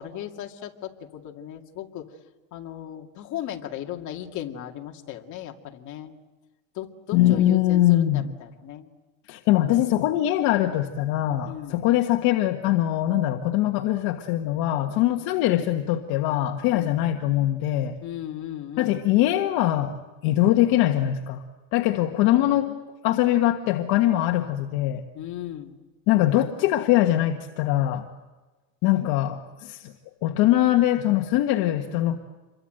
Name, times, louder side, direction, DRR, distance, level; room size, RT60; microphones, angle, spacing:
voice 1, 0.0-2.1 2.5-6.1 6.7-8.9 11.4-11.8 16.7-17.0 18.0-19.0 22.4-22.6 25.1-25.7, left 11 dB, 45° left, 2 dB, 2.5 m, -36 dB
voice 2, 7.1-8.2 9.3-18.0 18.8-20.0 20.2-21.4 21.7-22.8 23.0-25.0 26.1-28.1 28.8-29.9 30.2-32.2, left 13 dB, 60° left, 4 dB, 1.6 m, -22 dB
28.0 x 23.0 x 7.9 m, 1.2 s
cardioid pair, 140°, 40 cm